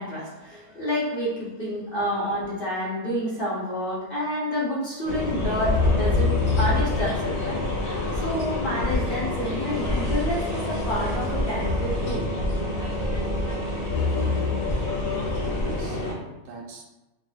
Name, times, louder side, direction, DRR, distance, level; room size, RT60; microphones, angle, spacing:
voice 1, 0.0-7.6 8.1-12.2, left 1 dB, 45° left, -7 dB, 0.9 m, -29 dB
sound 1, 5.0-16.1, left 2 dB, 60° left, 1.4 m, -26 dB
voice 2, 15.4-16.9, right 4 dB, 85° right, 0 dB, 1.2 m, -41 dB
4.8 x 2.6 x 2.4 m, 1.0 s
omnidirectional pair, 1.7 m